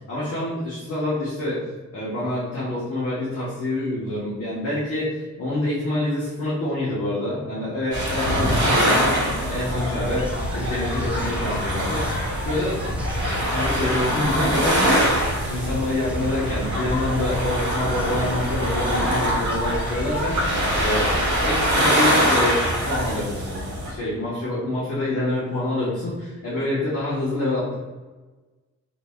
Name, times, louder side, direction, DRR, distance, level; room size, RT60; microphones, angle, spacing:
voice 1, 0.1-1.6 1.9-12.8 13.5-15.2 15.5-21.1 21.4-27.7, left 1 dB, 50° left, -10 dB, 1.2 m, -27 dB
sound 1, 7.9-23.9, equal, 80° right, 1.2 m, -23 dB
sound 2, 10.0-21.7, right 1 dB, 5° right, 0.5 m, -34 dB
4.1 x 3.9 x 2.3 m, 1.3 s
wide cardioid pair, 150°, 30 cm